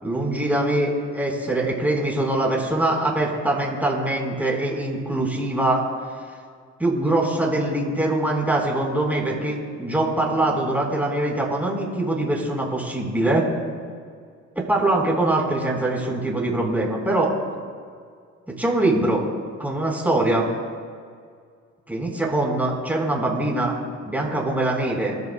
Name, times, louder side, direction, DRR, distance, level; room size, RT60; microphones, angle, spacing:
voice 1, 0.0-5.8 6.8-13.4 14.7-17.3 18.5-19.2 19.6-20.5 21.9-23.8 24.0-25.2, right 2 dB, 5° right, -2 dB, 4.1 m, -23 dB
27.0 x 13.5 x 2.2 m, 2.1 s
cardioid pair, 90°, 30 cm